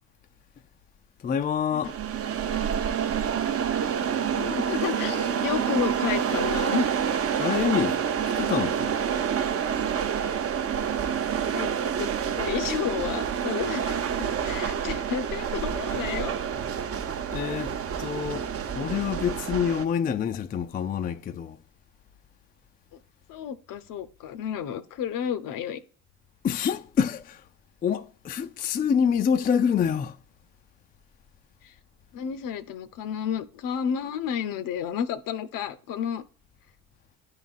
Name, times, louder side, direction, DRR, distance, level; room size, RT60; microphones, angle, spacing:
voice 1, 1.2-2.0 7.4-9.0 17.3-18.5 18.7-21.6 26.4-27.5 27.8-30.2, left 7 dB, 25° left, 0.3 m, -27 dB
sound 1, 1.8-19.9, right 8 dB, 40° right, 0.6 m, -28 dB
voice 2, 4.4-6.9 11.5-11.7 12.0-12.1 12.3-16.4 23.3-25.8 31.6-31.7 32.1-36.3, left 8 dB, 60° left, 0.7 m, -31 dB
10.0 x 4.0 x 2.4 m
supercardioid pair, 70°, 38 cm